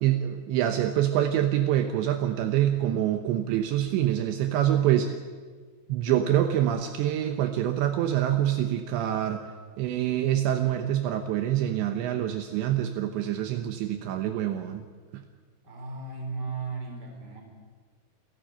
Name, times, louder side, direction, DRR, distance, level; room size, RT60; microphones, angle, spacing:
voice 1, 0.0-5.1 5.9-9.4 9.8-14.9 15.1-15.2, right 11 dB, 75° right, 7 dB, 3.1 m, -26 dB
voice 2, 15.6-17.4, right 4 dB, 25° right, 2 dB, 4.2 m, -35 dB
29.5 x 11.5 x 9.0 m, 1.5 s
omnidirectional pair, 5.4 m